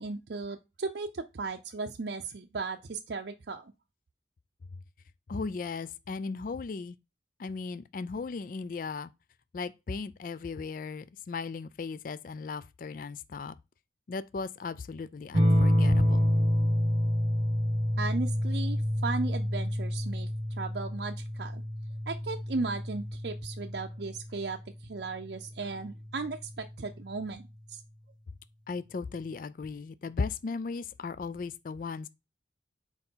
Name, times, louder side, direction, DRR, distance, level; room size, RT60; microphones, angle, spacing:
voice 1, 0.0-3.7 18.0-20.3 20.6-21.6 22.1-27.8, right 3 dB, 65° right, 0.5 m, -36 dB
voice 2, 5.3-6.9 7.4-9.1 9.5-13.5 14.1-16.2 28.7-32.1, left 4 dB, 50° left, 0.4 m, -36 dB
sound 1, 15.3-24.4 25.9-26.4, equal, 25° right, 1.3 m, -28 dB
4.5 x 4.4 x 5.5 m
head